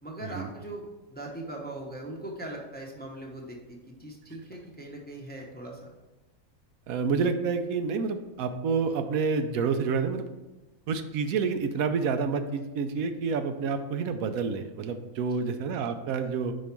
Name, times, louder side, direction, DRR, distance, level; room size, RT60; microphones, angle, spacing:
voice 1, 0.0-5.9, right 1 dB, 10° left, -1 dB, 0.7 m, -40 dB
voice 2, 6.9-10.2 10.9-16.5, right 5 dB, 80° right, 8 dB, 1.0 m, -28 dB
5.2 x 4.7 x 5.9 m, 1.1 s
omnidirectional pair, 1.5 m